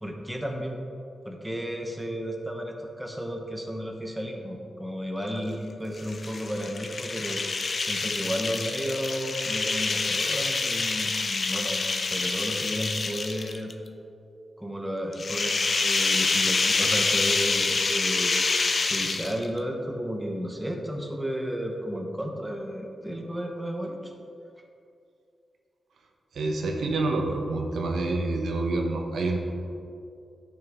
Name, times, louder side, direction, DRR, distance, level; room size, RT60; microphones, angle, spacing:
voice 1, 0.0-0.8 1.2-7.4 7.9-13.7 14.6-18.4 18.8-24.1, equal, 5° right, 2 dB, 0.9 m, -33 dB
sound 1, 6.0-13.7 15.1-19.6, left 3 dB, 40° left, 0.5 m, -27 dB
voice 2, 26.3-29.4, right 2 dB, 85° right, 2 dB, 0.9 m, -27 dB
11.0 x 6.2 x 3.5 m, 2.5 s
wide cardioid pair, 120°, 0 cm